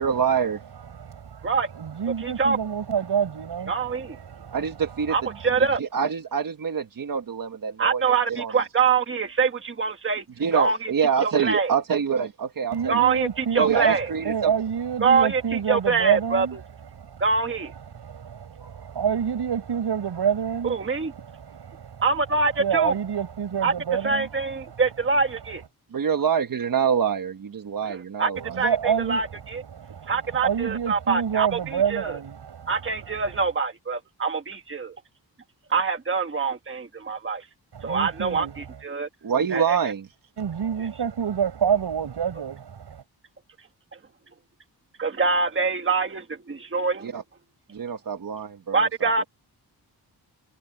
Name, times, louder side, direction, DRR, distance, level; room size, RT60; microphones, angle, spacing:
voice 1, 0.0-0.6 4.5-5.3 5.6-8.5 10.4-13.0 13.6-14.5 25.9-28.6 39.2-40.1 47.0-47.2 47.7-49.2, right 7 dB, 55° right, 1.5 m, -26 dB
voice 2, 0.7-5.8 12.7-24.8 25.2-25.6 28.4-33.5 37.7-38.8 40.4-43.0, right 8 dB, 85° right, 7.3 m, -29 dB
voice 3, 3.7-4.2 5.1-5.8 7.8-10.2 10.5-10.9 11.2-11.7 12.9-13.3 13.5-14.0 15.0-15.4 15.7-16.5 17.2-17.7 20.8-21.1 22.0-22.9 23.6-23.7 24.0-25.6 27.9-28.3 28.6-28.7 29.1-29.6 30.1-31.5 32.7-34.9 35.7-37.4 37.8-38.4 38.8-39.1 39.5-39.8 45.0-47.1 48.7-49.2, right 5 dB, 30° right, 1.5 m, -24 dB
wide cardioid pair, 150°, 40 cm